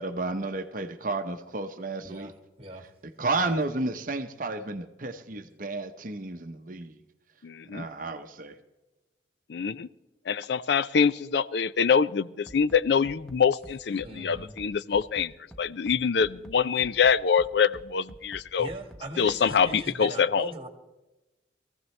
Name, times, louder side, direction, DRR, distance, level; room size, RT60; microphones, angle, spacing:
voice 1, 0.0-2.3 3.2-6.9 7.7-8.5, right 3 dB, 45° right, 7 dB, 0.8 m, -32 dB
voice 2, 2.0-2.3 2.6-2.8 3.4-3.6 14.0-14.5 18.6-20.7, right 2 dB, 30° right, 5 dB, 1.8 m, -40 dB
voice 3, 7.4-7.9 9.5-9.9 10.3-15.3 15.6-18.7 19.2-20.5, left 6 dB, 65° left, 16 dB, 0.4 m, -25 dB
Bass drum, 12.5-19.8, equal, 5° left, 0.9 m, -48 dB
22.0 x 15.0 x 3.2 m, 1.1 s
head